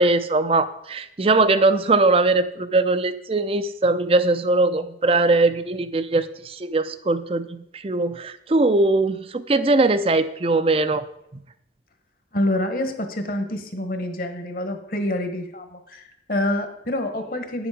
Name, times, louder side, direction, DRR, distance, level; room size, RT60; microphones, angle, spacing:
voice 1, 0.0-11.0, right 2 dB, 30° right, 13 dB, 0.5 m, -20 dB
voice 2, 12.3-17.7, left 1 dB, 50° left, 7 dB, 1.2 m, -27 dB
10.0 x 7.1 x 5.1 m, 0.80 s
head